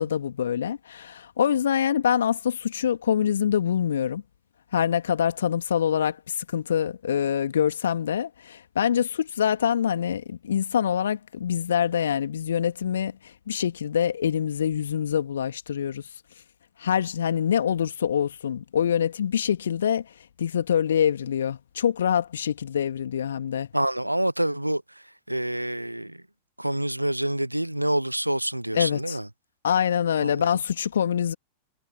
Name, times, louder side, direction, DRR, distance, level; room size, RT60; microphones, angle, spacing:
voice 1, 0.0-4.2 4.7-16.0 16.8-20.1 20.4-23.7 28.7-29.2 29.6-31.3, left 9 dB, 65° left, 2.4 m, -25 dB
voice 2, 23.7-26.2 26.6-29.3 30.2-30.5, right 1 dB, 85° right, 0.8 m, -27 dB
figure-of-eight pair, 90°, 0 cm